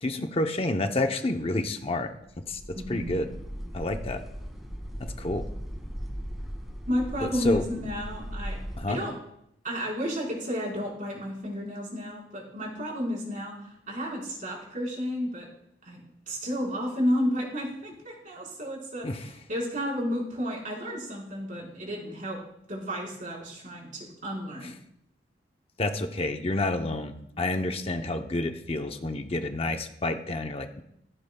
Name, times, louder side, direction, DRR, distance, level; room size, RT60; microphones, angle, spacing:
voice 1, 0.0-2.1 2.5-2.6 2.9-3.3 3.7-4.2 5.0-5.5 7.2-7.6 8.8-9.0 19.0-19.2 25.8-30.8, left 2 dB, 35° left, 6 dB, 0.7 m, -29 dB
sound 1, 2.2-8.8, equal, ahead, 2.0 m, -38 dB
voice 2, 2.7-3.2 6.9-8.6 8.9-9.1 9.6-15.5 15.8-22.4 22.7-24.7, equal, 45° right, -3 dB, 4.4 m, -32 dB
15.0 x 14.5 x 2.3 m, 0.75 s
head